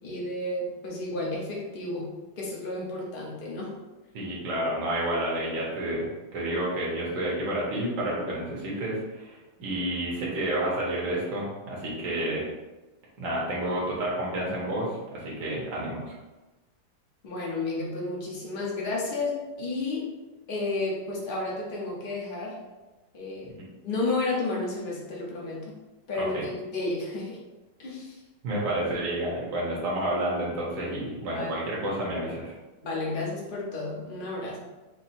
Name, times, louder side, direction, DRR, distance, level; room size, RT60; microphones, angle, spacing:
voice 1, 0.0-2.1 2.4-3.7 17.2-20.1 20.5-22.6 23.1-23.5 23.8-25.8 26.1-27.4 27.8-28.2 31.3-31.5 32.8-34.6, left 2 dB, 35° left, -4 dB, 1.0 m, -32 dB
voice 2, 4.1-12.4 13.2-16.1 23.5-23.6 26.1-26.4 28.4-32.5, right 1 dB, 65° right, -5 dB, 1.7 m, -30 dB
5.0 x 2.3 x 4.3 m, 1.1 s
omnidirectional pair, 2.2 m